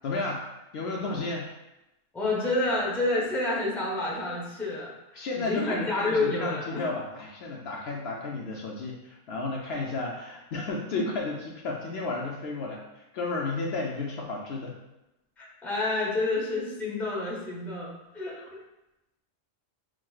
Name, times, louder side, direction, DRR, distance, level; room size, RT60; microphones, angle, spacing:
voice 1, 0.0-0.5 0.7-1.5 5.1-12.8 13.1-14.8 18.4-18.5, left 3 dB, 65° left, -2 dB, 0.7 m, -32 dB
voice 2, 2.1-6.9 15.4-18.6, left 2 dB, ahead, -5 dB, 0.6 m, -29 dB
5.9 x 2.3 x 2.3 m, 0.95 s
omnidirectional pair, 1.3 m